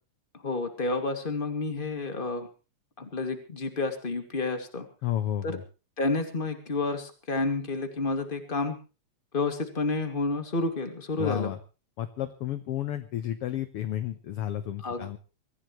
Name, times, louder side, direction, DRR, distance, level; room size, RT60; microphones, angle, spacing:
voice 1, 0.4-2.5 3.0-4.9 5.4-5.6 6.0-8.8 9.3-11.5 14.8-15.2, left 3 dB, 20° left, 5 dB, 2.3 m, -30 dB
voice 2, 5.0-5.6 11.2-11.6 12.0-15.2, left 12 dB, 65° left, 10 dB, 1.6 m, -32 dB
24.0 x 15.5 x 3.2 m, 0.34 s
omnidirectional pair, 3.4 m